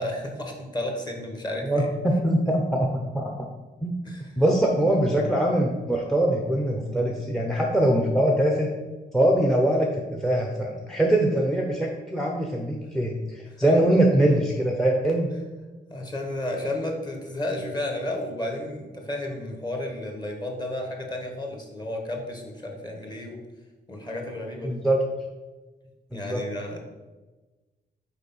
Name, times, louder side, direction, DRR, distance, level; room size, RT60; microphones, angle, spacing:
voice 1, 0.0-1.8 4.0-4.3 13.6-13.7 15.9-23.4 23.9-24.8 26.1-26.8, left 1 dB, 25° left, 2 dB, 1.3 m, -32 dB
voice 2, 1.6-3.3 3.8-3.9 4.4-8.7 9.1-15.3 24.6-25.0 26.1-26.4, right 1 dB, ahead, 0 dB, 0.7 m, -23 dB
6.5 x 4.9 x 5.4 m, 1.2 s
wide cardioid pair, 160°, 18 cm